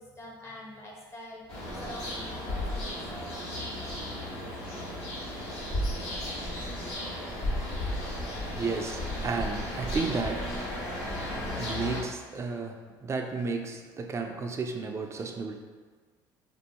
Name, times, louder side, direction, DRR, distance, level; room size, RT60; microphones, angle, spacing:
voice 1, 0.0-3.3, left 1 dB, 25° left, -3 dB, 0.7 m, -46 dB
sound 1, 1.5-12.0, left 1 dB, 70° left, 1.1 m, -34 dB
voice 2, 8.5-10.7 11.5-15.6, right 4 dB, 25° right, 4 dB, 0.3 m, -33 dB
2.4 x 2.2 x 2.8 m, 1.4 s
supercardioid pair, 85°, 10 cm